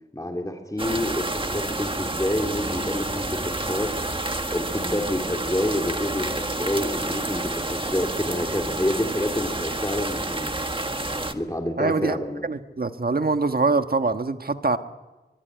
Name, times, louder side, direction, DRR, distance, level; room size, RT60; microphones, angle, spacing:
voice 1, 0.1-3.9 4.5-10.5 11.3-12.4, left 1 dB, 20° left, 2 dB, 3.1 m, -28 dB
sound 1, 0.8-11.3, right 2 dB, 30° right, 1.7 m, -29 dB
voice 2, 11.8-12.2 12.4-14.8, right 3 dB, 60° right, 8 dB, 1.4 m, -23 dB
24.5 x 22.0 x 9.4 m, 1.1 s
wide cardioid pair, 55°, 18 cm